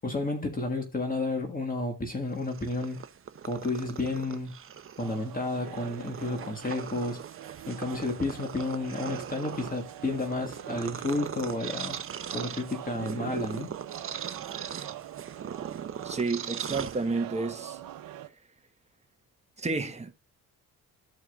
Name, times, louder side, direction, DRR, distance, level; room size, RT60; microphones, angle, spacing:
voice 1, 0.0-3.0 3.4-4.5 5.0-7.2 7.7-12.0 12.3-13.7, left 2 dB, 25° left, 1.7 m, -31 dB
Purr, 2.3-17.5, right 8 dB, 40° right, 0.7 m, -40 dB
sound 1, 5.0-18.3, right 12 dB, 75° right, 0.9 m, -44 dB
voice 2, 16.0-17.8 19.6-20.1, right 3 dB, 20° right, 1.2 m, -30 dB
14.0 x 4.8 x 2.4 m
cardioid pair, 85°, 34 cm